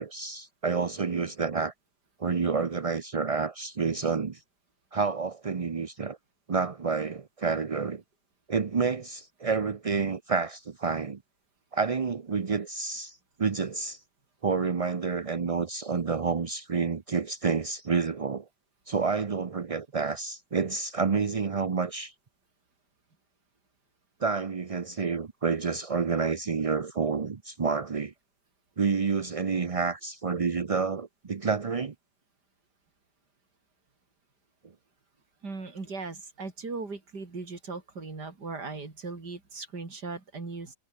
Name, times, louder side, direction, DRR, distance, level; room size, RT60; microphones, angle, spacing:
voice 1, 0.0-1.7 2.2-4.4 4.9-6.2 6.5-8.0 8.5-11.2 11.7-14.0 14.4-18.4 18.9-22.1 24.2-28.1 28.8-31.9, right 5 dB, 45° right, 0.4 m, -29 dB
voice 2, 35.4-40.8, right 4 dB, 75° right, 4.5 m, -38 dB
omnidirectional pair, 1.8 m